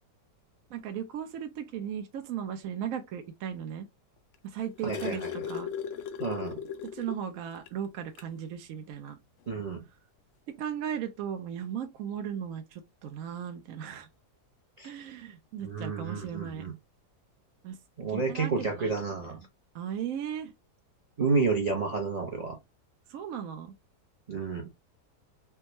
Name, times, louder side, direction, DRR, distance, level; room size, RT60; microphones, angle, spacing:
voice 1, 0.7-3.9 4.4-5.7 6.8-9.2 10.6-14.1 14.8-16.7 17.6-17.8 18.1-18.9 19.2-19.4 19.7-20.5 23.1-23.8, right 8 dB, 70° right, 0.8 m, -37 dB
sound 1, 4.3-7.3 7.7-7.8 8.1-8.4 9.5-9.6, left 8 dB, 80° left, 0.6 m, -37 dB
voice 2, 4.8-5.3 6.2-6.6 9.5-9.8 14.8-14.9 15.6-16.7 18.0-19.4 21.2-22.6 24.3-24.6, right 4 dB, 90° right, 0.3 m, -30 dB
3.5 x 2.2 x 2.9 m
omnidirectional pair, 1.8 m